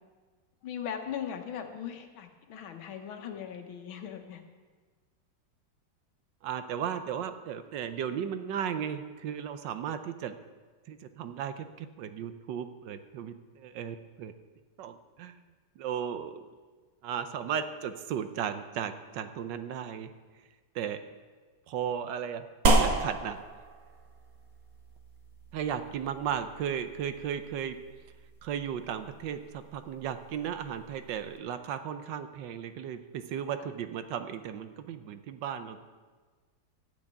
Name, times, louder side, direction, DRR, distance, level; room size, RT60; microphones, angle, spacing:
voice 1, 0.6-4.4 33.6-33.7, left 8 dB, 85° left, 6 dB, 1.9 m, -39 dB
voice 2, 6.4-10.3 10.9-14.3 14.8-15.4 15.8-16.4 17.0-20.1 20.7-21.0 21.7-22.5 22.8-23.4 25.5-27.8 28.4-35.8, right 8 dB, 70° right, 10 dB, 1.3 m, -35 dB
sound 1, 22.7-31.4, right 2 dB, 50° right, 1.4 m, -33 dB
12.0 x 6.3 x 8.9 m, 1.4 s
omnidirectional pair, 2.2 m